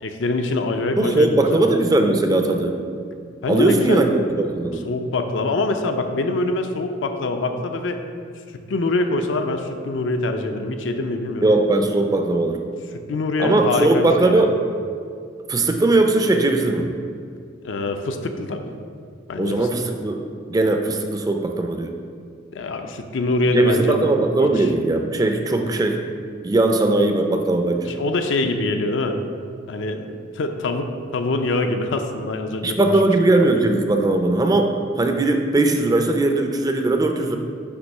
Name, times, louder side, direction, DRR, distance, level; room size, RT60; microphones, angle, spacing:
voice 1, 0.0-1.7 3.4-4.1 4.8-8.0 8.5-11.5 13.1-14.5 17.6-18.7 19.3-19.7 22.5-24.0 24.4-24.7 27.9-29.2 29.7-30.1 30.3-32.9, left 2 dB, 80° left, 6 dB, 0.5 m, -24 dB
voice 2, 1.0-2.7 3.5-4.8 11.4-12.6 13.4-14.6 15.5-16.9 19.4-20.2 20.5-21.9 23.5-26.0 26.4-27.9 32.6-37.4, right 2 dB, 20° right, 4 dB, 0.4 m, -19 dB
6.1 x 3.0 x 5.4 m, 2.3 s
head